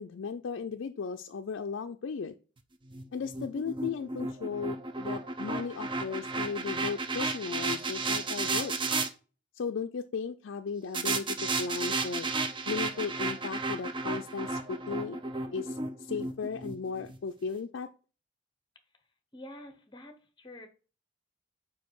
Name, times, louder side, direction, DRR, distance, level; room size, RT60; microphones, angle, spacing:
voice 1, 0.0-2.3 3.1-8.8 9.5-12.3 12.7-15.2 15.5-17.9, left 5 dB, 70° left, 5 dB, 0.4 m, -36 dB
sound 1, 2.9-9.1 10.9-17.2, right 3 dB, 25° right, 0.5 m, -33 dB
voice 2, 19.3-20.7, left 1 dB, 25° left, 7 dB, 0.9 m, -47 dB
5.2 x 4.8 x 4.6 m, 0.37 s
head